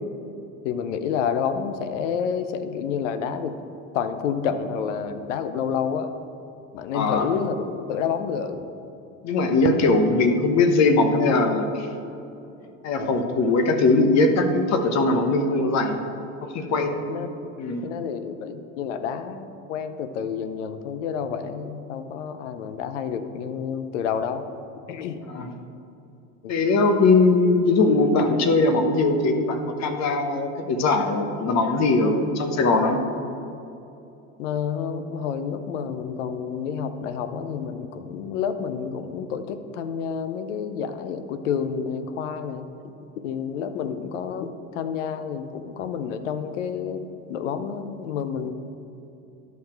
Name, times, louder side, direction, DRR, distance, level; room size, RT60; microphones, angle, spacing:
voice 1, 0.6-3.6 3.9-6.1 6.7-8.6 13.0-13.4 16.7-17.5 17.8-24.5 24.9-25.2 26.4-26.5 34.4-42.7 43.2-47.0 47.3-48.5, left 7 dB, 85° left, 10 dB, 0.7 m, -29 dB
voice 2, 6.9-7.3 9.2-11.9 12.8-16.0 16.4-17.0 17.6-17.8 25.3-25.5 26.5-33.0, left 3 dB, 50° left, 6 dB, 1.0 m, -20 dB
10.5 x 5.8 x 4.4 m, 2.8 s
hypercardioid pair, 90°, 36 cm